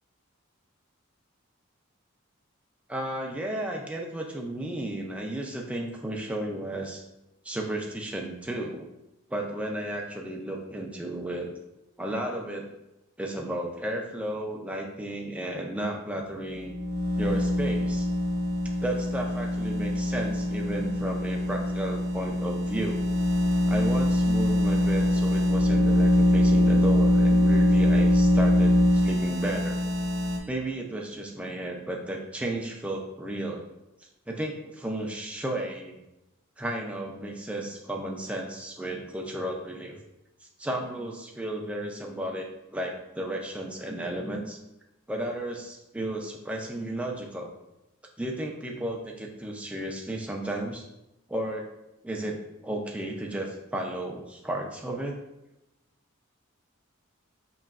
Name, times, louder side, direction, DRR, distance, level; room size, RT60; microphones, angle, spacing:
voice 1, 2.9-7.0 7.4-8.9 9.3-11.5 12.0-12.7 13.2-16.8 17.2-18.1 18.8-23.0 23.7-29.8 30.5-33.6 34.3-36.0 36.6-40.0 40.4-44.6 45.1-47.5 48.2-50.8 51.3-51.7 52.0-55.2, right 1 dB, 5° right, 0 dB, 0.5 m, -33 dB
sound 1, 16.5-30.4, left 1 dB, 60° right, 0.9 m, -23 dB
5.6 x 3.0 x 2.4 m, 0.92 s
head